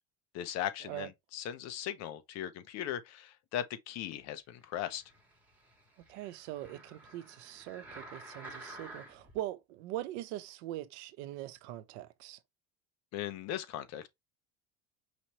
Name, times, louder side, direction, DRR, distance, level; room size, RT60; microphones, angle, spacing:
voice 1, 0.3-5.0 13.1-14.1, left 11 dB, 50° left, 0.8 m, -38 dB
sound 1, 4.8-9.4 10.0-10.1, right 1 dB, 5° right, 1.7 m, -51 dB
voice 2, 6.1-12.4, right 14 dB, 80° right, 0.8 m, -42 dB
5.1 x 3.0 x 2.9 m
cardioid pair, 145°, 34 cm